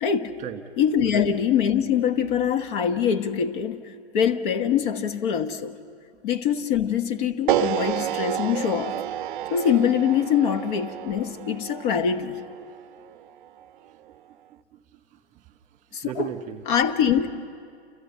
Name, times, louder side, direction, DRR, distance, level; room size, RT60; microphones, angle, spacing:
voice 1, 0.0-0.4 0.8-5.8 6.2-8.9 9.5-12.4 15.9-16.3 16.7-17.4, left 8 dB, 45° left, 1.3 m, -24 dB
sound 1, 7.5-13.6, right 12 dB, 45° right, 0.6 m, -30 dB
voice 2, 14.5-15.5 15.9-16.6, right 11 dB, 25° right, 1.7 m, -37 dB
28.5 x 28.5 x 5.6 m
figure-of-eight pair, 110°, 34 cm